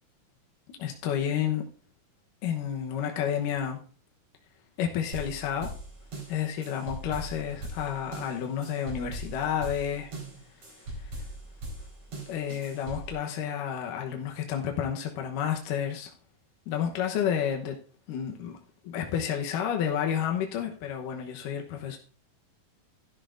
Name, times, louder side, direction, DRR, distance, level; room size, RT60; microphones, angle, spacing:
voice 1, 0.8-1.7 2.4-3.8 4.8-5.7 6.3-10.1 11.0-11.1 12.3-16.1 16.7-17.8 18.1-18.6 18.8-22.0, left 9 dB, 75° left, 2 dB, 2.6 m, -30 dB
sound 1, 5.1-13.1, right 1 dB, 50° right, 5.3 m, -40 dB
13.0 x 11.5 x 2.6 m, 0.40 s
omnidirectional pair, 4.0 m